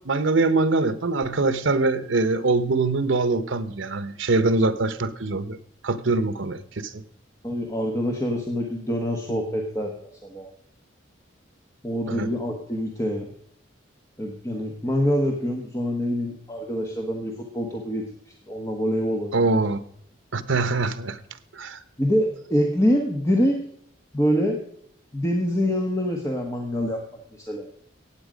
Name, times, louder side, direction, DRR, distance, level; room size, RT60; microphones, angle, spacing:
voice 1, 0.0-5.6 5.8-7.0 12.1-12.3 19.3-19.8 20.3-21.2 21.5-21.8, right 3 dB, 75° right, 13 dB, 0.9 m, -23 dB
voice 2, 7.4-9.9 10.3-10.5 11.8-13.3 14.2-18.1 18.5-19.4 22.0-23.6 24.1-24.6 25.1-27.0 27.5-27.6, equal, 15° left, 1 dB, 1.2 m, -25 dB
15.5 x 9.0 x 5.1 m, 0.67 s
head